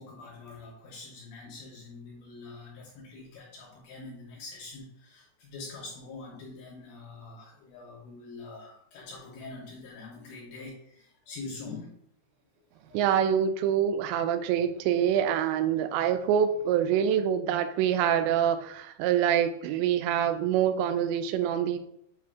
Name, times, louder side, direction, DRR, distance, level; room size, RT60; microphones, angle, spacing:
voice 1, 0.0-11.9 12.9-13.1, left 3 dB, 75° left, -1 dB, 2.3 m, -44 dB
voice 2, 12.9-21.8, right 9 dB, 90° right, 9 dB, 2.9 m, -25 dB
8.3 x 4.9 x 2.3 m, 0.70 s
omnidirectional pair, 5.0 m